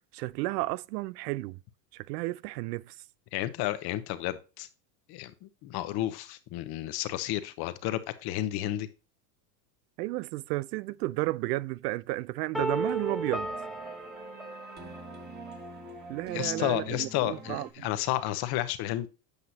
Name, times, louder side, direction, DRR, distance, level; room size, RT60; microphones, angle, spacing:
voice 1, 0.1-1.6 1.9-3.0 10.0-13.5 16.1-17.9, right 19 dB, 75° right, 0.6 m, -32 dB
voice 2, 3.3-4.7 5.1-8.9 16.3-19.1, left 14 dB, 50° left, 1.1 m, -32 dB
sound 1, 12.5-15.5, right 1 dB, ahead, 0.4 m, -35 dB
sound 2, 12.7-17.7, right 2 dB, 20° right, 1.6 m, -44 dB
8.3 x 5.5 x 2.8 m
supercardioid pair, 110°, 50 cm